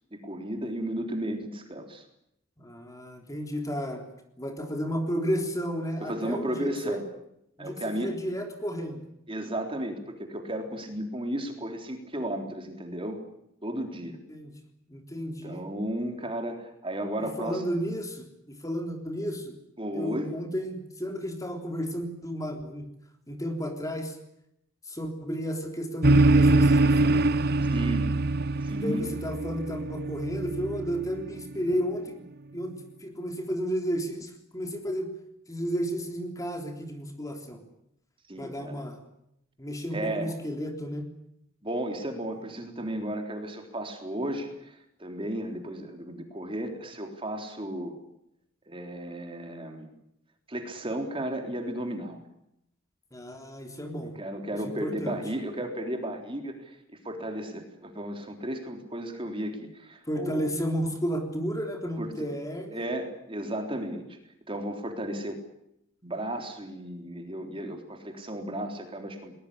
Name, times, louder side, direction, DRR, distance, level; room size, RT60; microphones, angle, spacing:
voice 1, 0.1-2.0 6.0-7.1 7.6-8.1 9.3-13.2 13.6-14.2 15.4-17.6 19.8-20.3 27.7-28.1 28.6-29.1 38.3-38.9 39.9-40.4 41.6-47.9 48.7-49.9 50.5-52.2 54.2-56.8 57.0-60.5 62.0-62.3 62.7-64.2 64.5-65.4 66.0-69.3, right 1 dB, 25° right, 4 dB, 3.6 m, -34 dB
voice 2, 2.6-4.0 4.4-7.0 7.6-9.0 14.3-14.5 14.9-15.7 17.2-19.6 19.9-22.9 23.3-24.2 24.9-27.3 28.7-32.3 32.5-35.1 35.5-37.6 38.4-39.0 39.6-41.1 53.1-54.2 54.6-55.2 60.1-62.9, equal, 15° left, 4 dB, 3.6 m, -32 dB
sound 1, 26.0-31.6, right 2 dB, 50° right, 0.9 m, -23 dB
21.0 x 20.5 x 9.9 m, 0.78 s
head